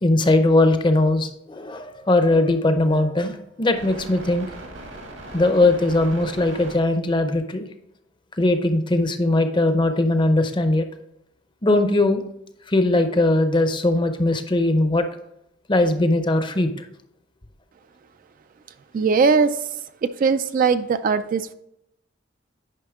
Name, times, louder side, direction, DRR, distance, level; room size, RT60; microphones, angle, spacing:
voice 1, 0.0-4.5 5.3-7.7 8.4-10.9 11.6-12.2 12.7-15.1 15.7-16.7, left 2 dB, 25° left, 8 dB, 0.6 m, -20 dB
sound 1, 1.7-6.8, right 1 dB, 80° right, 2.2 m, -40 dB
voice 2, 18.9-19.6 20.0-21.5, right 5 dB, 45° right, 11 dB, 0.3 m, -20 dB
9.8 x 5.4 x 3.5 m, 0.81 s
head